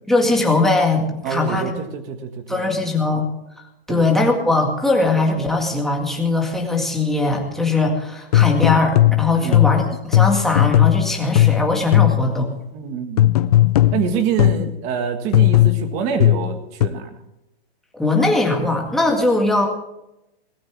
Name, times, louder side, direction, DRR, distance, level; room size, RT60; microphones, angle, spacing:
voice 1, 0.1-1.7 2.5-3.3 3.9-12.5 17.9-19.7, left 2 dB, ahead, 0 dB, 2.0 m, -20 dB
voice 2, 1.2-2.7 3.9-4.0 9.3-9.6 12.7-13.3 13.9-17.2, right 7 dB, 25° right, 7 dB, 1.8 m, -26 dB
sound 1, 8.3-12.4 13.2-14.8 15.3-16.9, left 14 dB, 40° left, 0.6 m, -16 dB
19.0 x 16.0 x 3.5 m, 0.89 s
hypercardioid pair, 170°, 31 cm